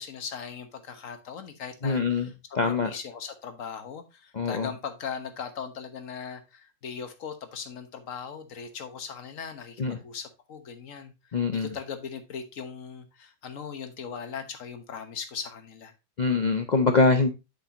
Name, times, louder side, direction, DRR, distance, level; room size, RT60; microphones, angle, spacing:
voice 1, 0.0-15.9, left 6 dB, 55° left, 1.4 m, -39 dB
voice 2, 1.8-2.3 2.5-2.9 4.3-4.7 9.8-10.0 11.3-11.7 16.2-17.3, left 4 dB, 85° left, 0.4 m, -23 dB
8.3 x 6.1 x 2.8 m
omnidirectional pair, 1.8 m